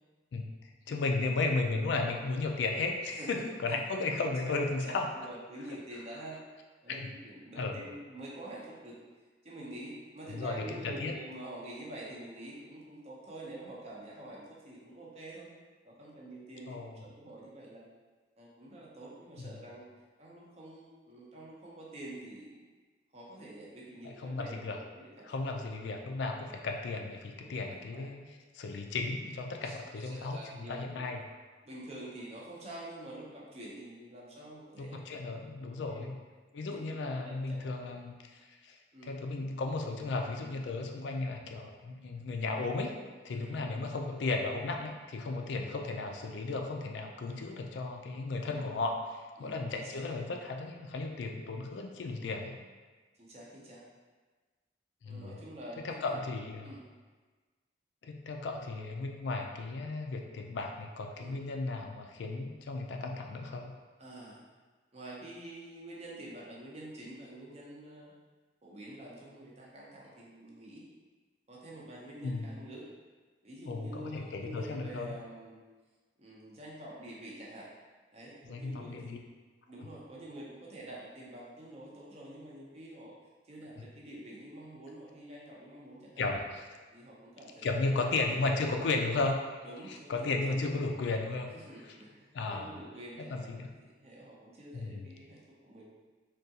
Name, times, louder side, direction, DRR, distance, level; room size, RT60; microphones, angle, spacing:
voice 1, 0.3-5.1 6.9-7.1 7.6-7.8 10.3-11.1 16.7-17.0 19.5-19.6 24.0-24.8 25.2-28.2 28.5-31.2 34.8-36.2 36.5-38.8 39.0-43.0 43.2-52.6 55.0-55.4 55.8-56.7 58.0-63.7 72.2-72.5 73.7-75.2 78.5-79.2 86.2-86.7 87.6-89.4 89.9-91.6 92.3-92.7 93.3-93.7 94.7-95.1, left 3 dB, 70° left, 3 dB, 0.3 m, -35 dB
voice 2, 3.2-3.8 4.4-4.5 4.8-6.4 6.8-9.0 9.4-15.5 15.8-17.9 18.4-19.9 20.2-22.6 23.1-25.3 27.4-27.5 27.9-28.0 29.6-29.8 30.0-31.0 31.6-35.0 35.6-36.1 36.7-37.8 38.9-39.2 43.3-43.7 45.4-45.6 47.3-47.6 49.4-50.0 53.2-53.8 55.0-56.2 56.6-56.8 61.2-61.4 64.0-64.4 64.9-68.1 68.6-70.9 71.5-72.9 73.4-75.6 76.2-77.7 78.1-79.2 79.7-83.1 83.4-86.3 86.9-88.4 89.6-90.9 91.5-93.5 93.8-95.9, right 1 dB, 35° right, -4 dB, 0.6 m, -47 dB
3.5 x 2.3 x 2.7 m, 1.4 s
head